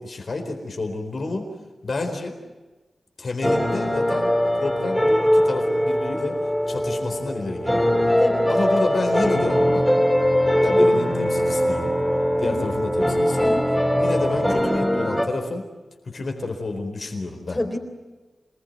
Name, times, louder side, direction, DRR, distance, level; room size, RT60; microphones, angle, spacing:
voice 1, 0.0-1.5 1.8-2.4 3.2-6.4 6.7-7.9 8.5-9.8 10.6-11.9 12.4-13.4 13.9-15.6 16.0-17.6, left 3 dB, 50° left, 4 dB, 4.2 m, -29 dB
sound 1, 3.4-15.3, equal, 5° left, 2.2 m, -21 dB
voice 2, 8.2-8.5 12.4-12.7 13.4-13.7 17.5-17.8, left 1 dB, 20° left, 6 dB, 3.6 m, -28 dB
27.0 x 20.5 x 9.4 m, 1.2 s
wide cardioid pair, 120°, 0 cm